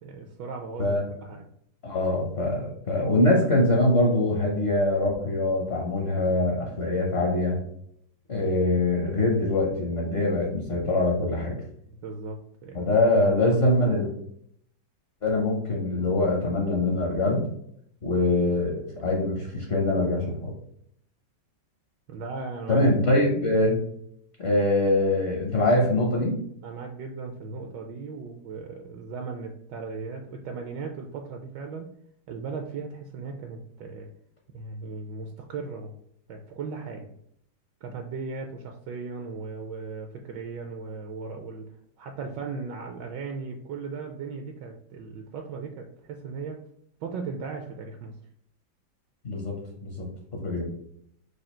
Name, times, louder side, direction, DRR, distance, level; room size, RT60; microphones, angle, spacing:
voice 1, 0.0-1.5 11.9-12.8 22.1-22.9 26.6-31.9 32.3-34.1 34.5-35.9 36.3-37.1 37.8-46.6 47.0-48.1, right 4 dB, 75° right, 3 dB, 1.1 m, -37 dB
voice 2, 1.8-7.6 8.3-11.6 12.7-14.1 15.2-17.5 18.0-20.5 22.7-23.8 24.4-26.4 49.2-50.6, left 2 dB, 50° left, -1 dB, 0.8 m, -23 dB
5.0 x 2.3 x 4.3 m, 0.69 s
omnidirectional pair, 2.1 m